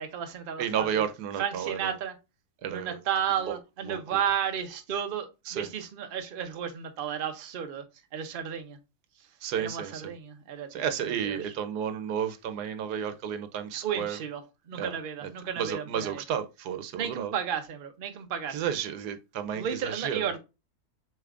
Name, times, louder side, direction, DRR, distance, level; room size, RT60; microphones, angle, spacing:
voice 1, 0.0-1.1 1.4-2.1 2.7-7.8 8.1-8.8 9.6-10.8 11.2-11.4 13.8-14.4 14.7-16.2 16.9-18.6 19.5-20.4, right 8 dB, 45° right, 0.7 m, -33 dB
voice 2, 0.6-2.0 2.6-3.0 3.5-3.6 3.8-4.2 5.5-5.7 9.4-10.1 10.7-14.2 14.8-15.0 15.2-17.3 18.5-20.3, right 8 dB, 90° right, 1.2 m, -32 dB
6.6 x 3.2 x 2.4 m
omnidirectional pair, 1.7 m